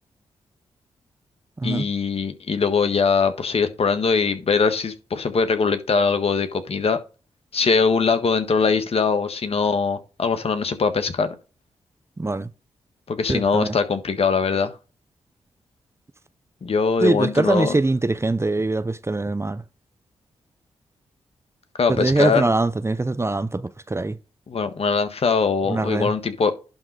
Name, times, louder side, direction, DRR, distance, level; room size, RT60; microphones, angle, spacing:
voice 1, 1.6-7.0 7.5-11.3 13.1-14.7 16.6-17.8 21.8-22.5 24.5-26.5, left 5 dB, 55° left, 1.4 m, -22 dB
voice 2, 12.2-12.5 13.3-13.7 17.0-19.6 21.9-24.2 25.7-26.1, right 2 dB, 20° right, 0.7 m, -23 dB
11.0 x 3.7 x 4.8 m
supercardioid pair, 40°, 12 cm